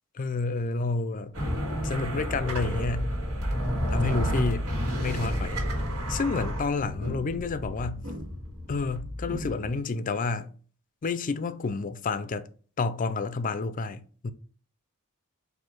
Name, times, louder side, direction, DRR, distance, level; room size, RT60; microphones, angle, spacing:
voice 1, 0.2-1.3 1.8-3.1 3.9-4.7 5.0-5.7 6.1-8.0 8.7-10.5 11.0-12.5 12.8-14.3, left 4 dB, 40° left, 0.4 m, -30 dB
sound 1, 1.3-9.8, equal, 85° right, 2.0 m, -31 dB
4.5 x 2.7 x 4.3 m
head